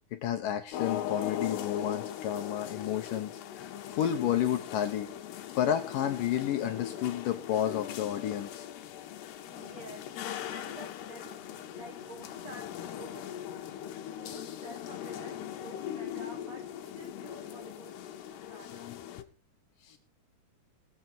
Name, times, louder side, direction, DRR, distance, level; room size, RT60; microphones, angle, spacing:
voice 1, 0.1-5.1 5.5-8.7 18.9-19.0 19.9-20.0, left 10 dB, 70° left, 6 dB, 2.3 m, -31 dB
sound 1, 0.7-19.2, left 10 dB, 85° left, 3.0 m, -40 dB
voice 2, 9.4-18.0 18.3-18.9, right 3 dB, 60° right, 4 dB, 1.9 m, -50 dB
21.0 x 7.4 x 4.4 m, 0.32 s
omnidirectional pair, 4.6 m